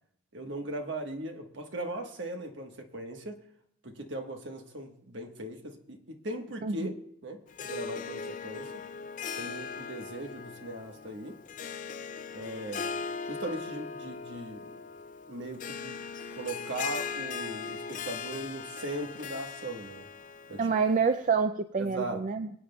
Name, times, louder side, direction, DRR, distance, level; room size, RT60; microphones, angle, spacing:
voice 1, 0.3-3.4 3.8-6.9 7.2-8.8 9.4-11.4 12.3-12.9 13.2-14.8 15.3-16.0 16.3-20.0 20.5-20.7 21.8-22.2, right 1 dB, 70° right, 4 dB, 1.3 m, -39 dB
voice 2, 6.6-6.9 20.6-22.6, right 5 dB, 40° right, 10 dB, 0.3 m, -27 dB
Harp, 7.5-21.2, left 6 dB, 40° left, 0.4 m, -39 dB
23.0 x 8.8 x 2.3 m, 0.69 s
head